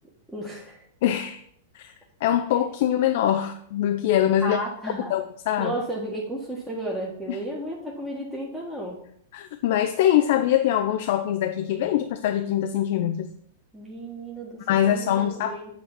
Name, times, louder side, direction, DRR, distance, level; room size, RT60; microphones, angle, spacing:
voice 1, 0.3-0.8 4.4-5.1 5.6-9.0 13.7-15.7, right 1 dB, 5° right, -4 dB, 1.4 m, -33 dB
voice 2, 1.0-1.4 1.7-1.9 2.2-4.6 5.1-5.7 7.3-7.4 9.3-13.3 14.7-15.5, left 11 dB, 55° left, 7 dB, 0.5 m, -23 dB
8.6 x 3.2 x 5.6 m, 0.67 s
figure-of-eight pair, 95°, 0 cm